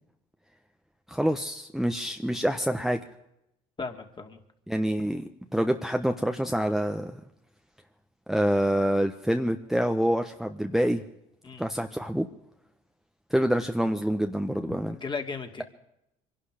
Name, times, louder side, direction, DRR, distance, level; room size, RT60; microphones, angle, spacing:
voice 1, 1.1-3.0 4.7-5.2 5.5-7.2 8.3-11.0 11.6-12.3 13.3-14.9, equal, ahead, 5 dB, 1.1 m, -26 dB
voice 2, 3.8-4.4 11.4-11.6 14.9-15.6, left 4 dB, 30° left, 5 dB, 2.5 m, -35 dB
24.5 x 12.0 x 5.0 m, 0.83 s
hypercardioid pair, 70°, 16 cm